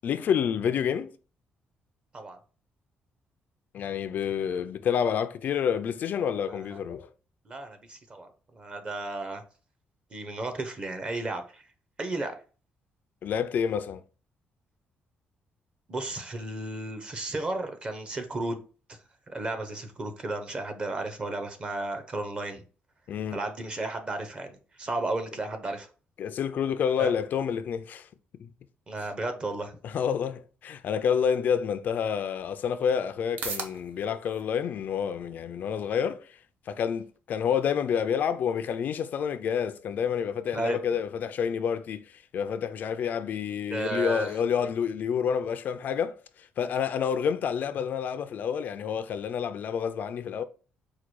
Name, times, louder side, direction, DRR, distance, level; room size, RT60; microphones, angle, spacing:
voice 1, 0.0-1.1 3.7-7.1 13.2-14.0 23.1-23.4 26.2-28.1 28.4-28.5 29.8-36.4 36.7-50.4, left 7 dB, 55° left, 0.3 m, -29 dB
voice 2, 6.5-6.8 7.5-9.4 10.1-11.6 12.0-12.4 15.9-18.6 18.9-19.0 19.3-22.6 23.3-25.9 27.0-27.1 28.9-29.7 40.5-40.8 43.7-44.4, right 2 dB, 30° right, 0.7 m, -33 dB
sound 1, 32.8-48.9, right 4 dB, 55° right, 0.8 m, -49 dB
4.7 x 2.2 x 4.5 m
cardioid pair, 155°, 4 cm